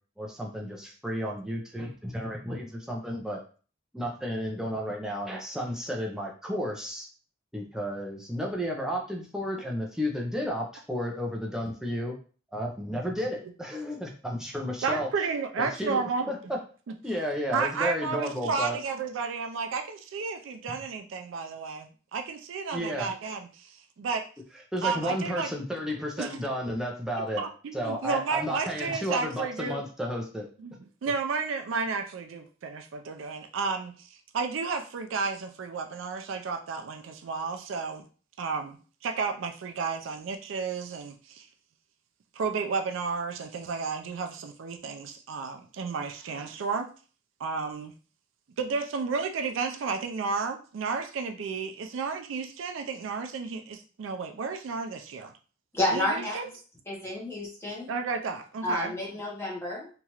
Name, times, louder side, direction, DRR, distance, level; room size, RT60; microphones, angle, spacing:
voice 1, 0.2-3.4 3.9-7.1 7.5-12.2 12.5-15.1 15.6-16.0 16.3-16.6 17.0-18.8 22.7-23.1 24.7-27.4 27.7-30.5, equal, 5° right, -1 dB, 0.4 m, -32 dB
voice 2, 14.8-16.3 17.5-24.2 24.8-25.5 26.2-26.4 26.7-26.8 27.4-29.9 30.6-38.0 38.4-41.5 42.4-46.9 47.4-47.9 48.6-55.3 55.9-56.5 57.9-58.9, right 5 dB, 85° right, 5 dB, 0.4 m, -32 dB
voice 3, 55.7-56.4 56.9-57.9 58.6-59.9, left 1 dB, 15° left, -4 dB, 0.9 m, -30 dB
2.9 x 2.4 x 2.9 m, 0.38 s
head